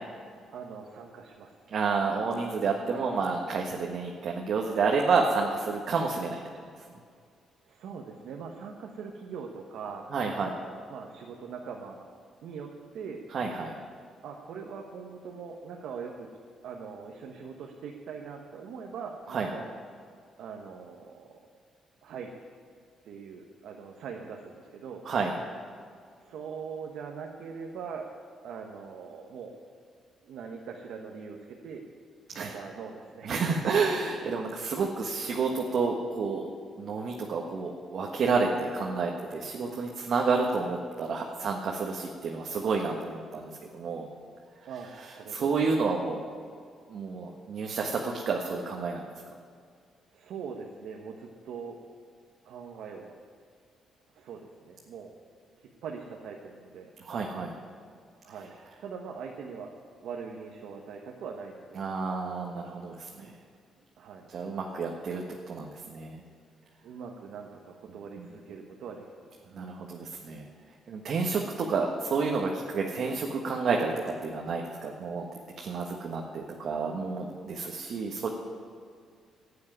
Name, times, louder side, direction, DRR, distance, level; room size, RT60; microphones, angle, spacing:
voice 1, 0.5-1.5 7.7-12.1 12.4-13.2 14.2-16.3 16.6-19.6 20.4-21.4 22.0-22.3 23.0-25.0 26.2-28.1 28.4-29.6 30.2-31.8 32.4-33.4 44.7-44.9 45.2-45.7 50.1-51.8 52.4-53.1 54.1-55.1 55.6-56.9 58.2-58.5 58.8-59.8 60.0-61.9 64.0-64.3 66.8-69.3, right 6 dB, 80° right, 1 dB, 1.2 m, -42 dB
voice 2, 1.7-6.4 10.1-10.5 13.3-13.7 19.3-19.5 25.0-25.3 32.3-32.5 33.2-36.5 36.8-44.1 45.0-46.2 46.9-49.1 57.0-57.5 61.8-63.3 64.3-66.2 69.5-70.4 70.9-73.9 74.2-75.2 75.6-78.3, right 4 dB, 60° right, 0 dB, 1.4 m, -30 dB
12.0 x 8.5 x 9.8 m, 2.2 s
cardioid pair, 90°, 0 cm